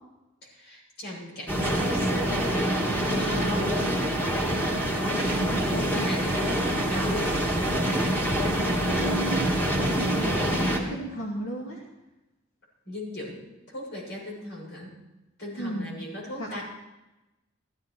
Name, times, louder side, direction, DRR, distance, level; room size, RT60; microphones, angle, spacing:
voice 1, 0.4-2.8 3.1-3.8 4.9-5.3 5.7-7.7 12.9-14.9 15.4-16.6, equal, 55° left, -2 dB, 7.1 m, -38 dB
sound 1, 1.5-10.8, right 1 dB, 10° left, 2.5 m, -25 dB
voice 2, 8.6-11.8 15.6-15.9 16.4-16.6, right 1 dB, 85° left, -3 dB, 2.4 m, -35 dB
15.5 x 15.5 x 4.7 m, 0.99 s
head